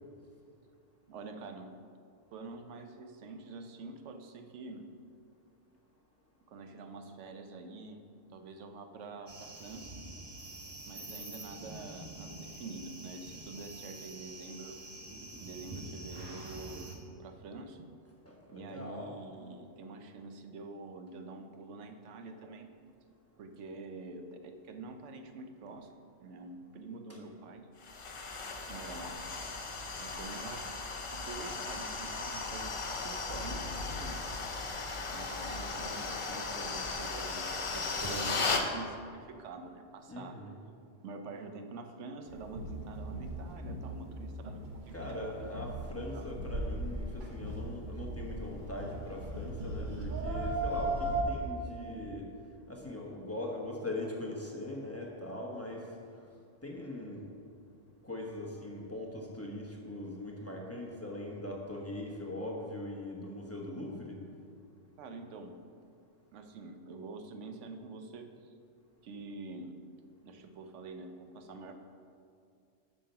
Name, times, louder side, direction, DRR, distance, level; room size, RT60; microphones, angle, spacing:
voice 1, 1.1-1.8 2.3-5.0 6.5-9.9 10.9-14.9 15.4-17.9 18.5-22.8 23.4-25.9 26.2-27.7 28.7-29.2 30.0-30.7 31.1-34.2 35.1-40.4 41.0-45.4 45.9-46.3 65.0-65.7 66.3-68.5 69.0-69.8 70.2-71.7, right 3 dB, 85° right, 6 dB, 1.1 m, -46 dB
sound 1, 9.3-17.0, right 2 dB, 25° right, 0.9 m, -46 dB
voice 2, 18.2-19.1 27.1-27.2 40.1-40.6 44.9-52.3 52.7-55.9 56.6-57.2 58.0-64.2, left 1 dB, 15° left, -2 dB, 1.1 m, -41 dB
sound 2, 27.8-38.7, left 3 dB, 35° left, 0.6 m, -36 dB
sound 3, 42.3-51.2, right 1 dB, 45° right, 1.2 m, -38 dB
7.5 x 6.5 x 5.6 m, 2.3 s
omnidirectional pair, 1.2 m